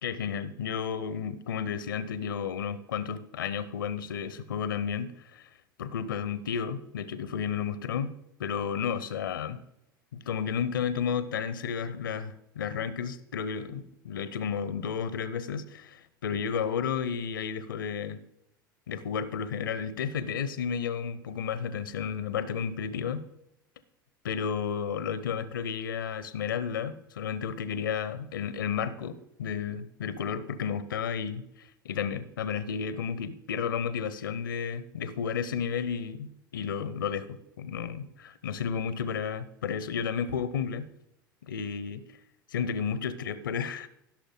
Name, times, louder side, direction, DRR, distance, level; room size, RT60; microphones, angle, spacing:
voice 1, 0.0-5.5 5.8-8.1 8.4-9.6 10.1-18.2 18.9-23.2 24.2-40.9 41.5-42.0 42.5-43.9, left 7 dB, 70° left, 15 dB, 0.8 m, -32 dB
16.0 x 6.7 x 3.8 m, 0.81 s
figure-of-eight pair, 75°, 12 cm